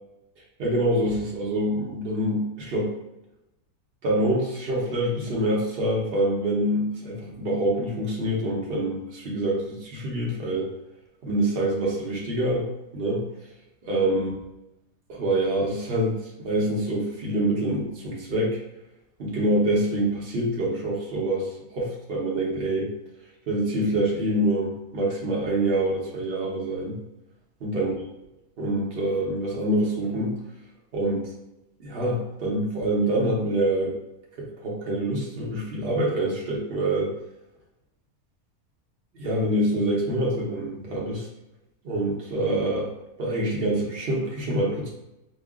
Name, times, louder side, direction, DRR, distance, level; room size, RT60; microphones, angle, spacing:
voice 1, 0.6-2.9 4.0-10.7 11.2-12.7 12.9-13.2 13.8-14.3 15.1-18.6 19.2-22.9 23.5-27.0 27.6-27.9 28.6-30.4 30.9-31.3 31.8-33.9 34.4-37.1 39.2-41.3 41.8-42.9 43.2-44.9, right 1 dB, 45° right, -3 dB, 1.0 m, -26 dB
5.3 x 2.3 x 2.4 m, 0.91 s
omnidirectional pair, 1.6 m